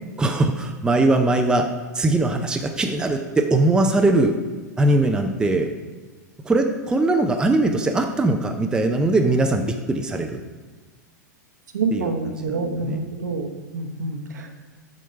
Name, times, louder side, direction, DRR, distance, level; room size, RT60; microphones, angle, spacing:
voice 1, 0.2-1.7 1.9-4.4 4.8-5.7 6.4-10.4 11.9-12.5 12.8-13.0, right 2 dB, 10° right, 5 dB, 0.5 m, -21 dB
voice 2, 11.7-14.5, right 3 dB, 70° right, 4 dB, 1.0 m, -27 dB
7.6 x 5.1 x 4.4 m, 1.3 s
figure-of-eight pair, 95°, 10 cm